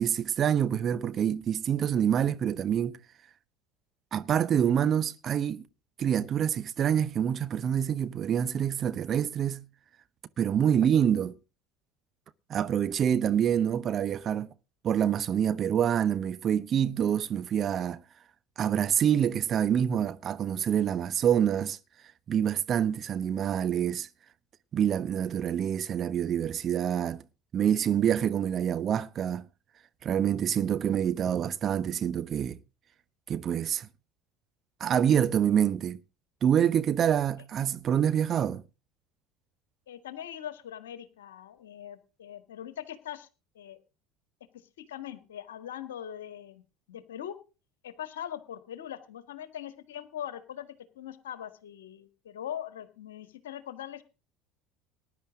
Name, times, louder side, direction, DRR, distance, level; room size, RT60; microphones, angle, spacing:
voice 1, 0.0-3.0 4.1-5.6 6.0-9.6 10.4-11.3 12.5-14.5 14.8-18.0 18.6-21.8 22.3-24.1 24.7-27.2 27.5-29.4 30.0-32.6 33.3-33.9 34.8-36.0 36.4-38.6, right 9 dB, 40° right, 0.9 m, -26 dB
voice 2, 39.9-43.3 43.5-43.8 44.8-47.3 47.8-54.0, left 10 dB, 70° left, 1.7 m, -41 dB
19.5 x 10.5 x 3.7 m
figure-of-eight pair, 65°, 0 cm